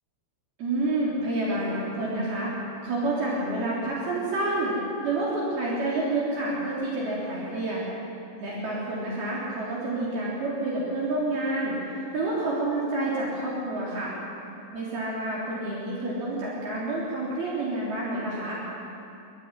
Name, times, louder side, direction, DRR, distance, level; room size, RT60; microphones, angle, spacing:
voice 1, 0.6-2.5 2.8-4.8 5.0-7.8 8.4-11.8 12.1-14.1 14.7-18.6, right 2 dB, 60° right, -6 dB, 5.6 m, -28 dB
26.5 x 14.5 x 10.0 m, 2.7 s
omnidirectional pair, 5.2 m